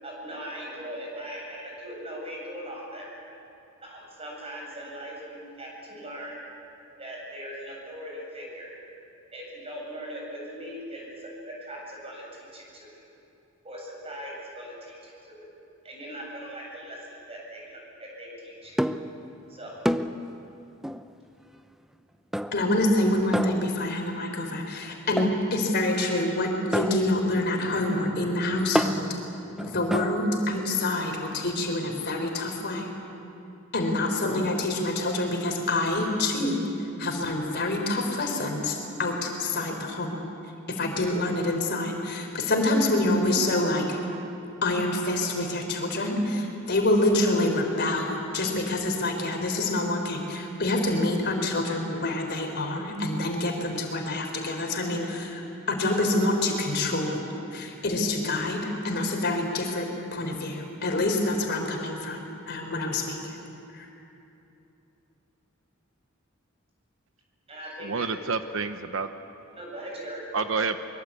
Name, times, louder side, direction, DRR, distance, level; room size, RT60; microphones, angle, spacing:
voice 1, 0.0-3.1 3.8-6.4 7.0-8.7 9.3-12.3 12.5-12.9 13.6-15.5 15.8-18.8 19.5-19.7 67.5-68.1 69.5-70.2, equal, 30° right, -2 dB, 7.8 m, -40 dB
sound 1, 18.8-19.2 19.9-20.3 20.8-21.1 22.3-22.8 23.3-24.1 25.2-25.5 26.7-30.3, equal, ahead, 0.6 m, -30 dB
voice 2, 22.5-29.1 29.6-32.9 33.7-36.6 37.0-40.2 40.7-44.0 44.6-55.4 55.7-57.2 57.5-63.2 63.7-63.9, left 2 dB, 55° left, 2 dB, 4.0 m, -26 dB
voice 3, 67.8-69.1 70.3-70.8, right 4 dB, 70° right, 9 dB, 0.9 m, -28 dB
24.0 x 23.0 x 8.4 m, 2.9 s
head